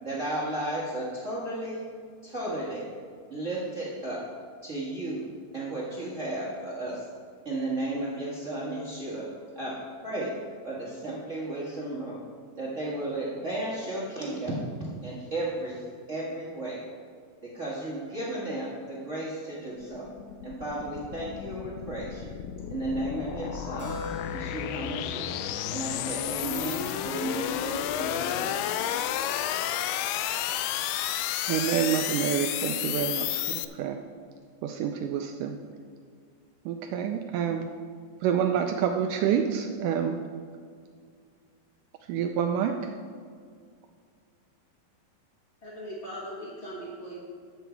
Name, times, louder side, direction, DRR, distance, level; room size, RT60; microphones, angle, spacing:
voice 1, 0.0-1.8 2.2-2.8 3.3-4.2 4.6-5.2 5.5-7.0 7.4-9.3 9.5-9.8 10.0-10.3 10.6-12.2 12.6-14.5 15.0-15.8 16.1-16.8 17.4-20.1 20.4-22.3 22.7-23.9 24.3-25.4 25.7-28.6, right 1 dB, 45° right, -6 dB, 0.9 m, -34 dB
sound 1, 19.7-33.7, left 11 dB, 80° left, 2.0 m, -32 dB
Keyboard (musical), 23.8-27.9, left 5 dB, 5° right, 1.9 m, -42 dB
voice 2, 31.5-34.0 34.6-35.6 36.6-37.7 38.2-40.2 42.1-42.9, right 8 dB, 85° right, 5 dB, 1.8 m, -28 dB
voice 3, 45.6-47.2, right 1 dB, 30° left, -7 dB, 1.2 m, -39 dB
11.5 x 8.0 x 4.5 m, 2.1 s
omnidirectional pair, 4.3 m